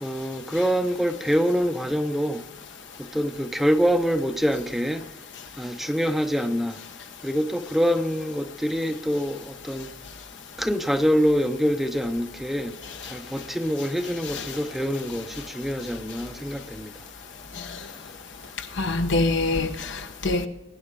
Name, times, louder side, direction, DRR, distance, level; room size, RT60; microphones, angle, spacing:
voice 1, 0.0-2.4 3.0-5.1 5.6-6.8 7.2-9.9 10.6-12.8 13.0-16.9, equal, ahead, 0.6 m, -25 dB
voice 2, 18.8-20.5, left 2 dB, 70° left, 1.1 m, -24 dB
20.5 x 9.5 x 3.6 m
head